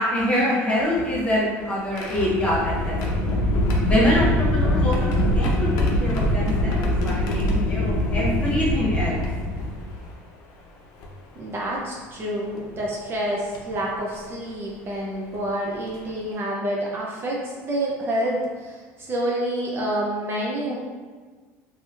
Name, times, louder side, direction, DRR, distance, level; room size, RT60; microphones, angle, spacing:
voice 1, 0.0-3.5 3.8-9.2, left 1 dB, 15° left, -6 dB, 1.2 m, -25 dB
sound 1, 0.8-10.1 11.0-11.1 12.6-12.8 13.5-13.7 15.3-15.4 15.9-16.1, left 1 dB, 70° left, 0.6 m, -24 dB
voice 2, 11.4-20.8, right 1 dB, 35° right, -3 dB, 0.6 m, -28 dB
3.2 x 2.7 x 2.5 m, 1.4 s
supercardioid pair, 105°, 7 cm